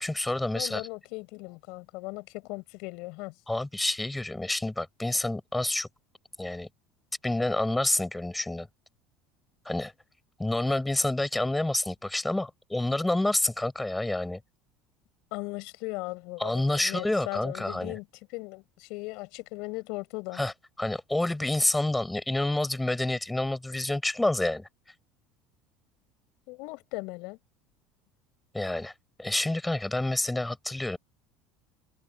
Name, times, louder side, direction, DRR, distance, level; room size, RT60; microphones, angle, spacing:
voice 1, 0.0-0.8 3.5-5.9 6.4-6.7 7.2-8.7 9.6-9.9 10.4-14.4 16.4-18.0 20.3-20.5 20.8-24.7 28.5-28.9 29.2-31.0, left 2 dB, 5° left, 6.6 m, -28 dB
voice 2, 0.5-3.3 15.3-18.1 18.3-20.4 26.5-27.4, left 25 dB, 65° left, 6.1 m, -38 dB
cardioid pair, 155°, 0 cm